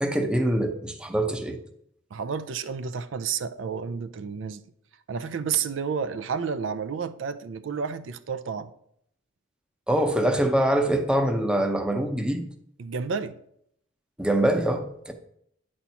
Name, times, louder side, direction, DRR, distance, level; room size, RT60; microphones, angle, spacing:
voice 1, 0.0-1.6 9.9-12.5 14.2-15.1, right 1 dB, 5° right, 0.6 m, -24 dB
voice 2, 2.1-4.6 5.1-8.7 12.8-13.4, right 6 dB, 75° right, 0.4 m, -31 dB
9.4 x 4.4 x 5.6 m
head